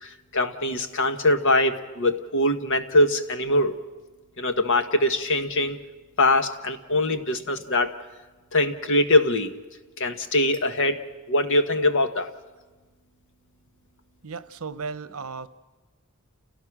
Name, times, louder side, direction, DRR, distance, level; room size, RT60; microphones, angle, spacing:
voice 1, 0.0-3.8 4.4-5.8 6.2-7.9 8.5-9.5 10.0-11.0 11.3-12.3, left 1 dB, 60° left, 8 dB, 1.5 m, -22 dB
voice 2, 14.2-15.5, right 4 dB, 75° right, 12 dB, 0.9 m, -36 dB
30.0 x 17.5 x 6.2 m, 1.3 s
head